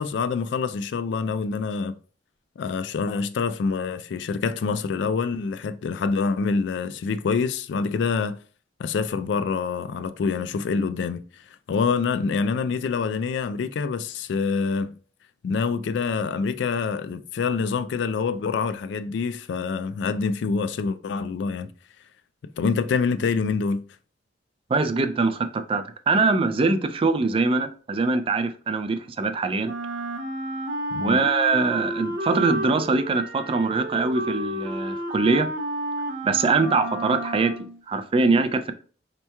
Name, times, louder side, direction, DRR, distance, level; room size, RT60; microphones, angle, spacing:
voice 1, 0.0-2.0 2.6-8.4 8.8-11.2 11.7-14.9 15.4-21.7 22.6-23.8 30.9-31.2, left 5 dB, 70° left, 0.3 m, -26 dB
voice 2, 24.7-29.7 31.0-35.5 36.2-37.5 37.9-38.7, right 3 dB, 30° right, 0.3 m, -23 dB
Wind instrument woodwind instrument, 29.6-37.8, right 1 dB, 90° right, 0.6 m, -31 dB
4.3 x 2.9 x 2.2 m
head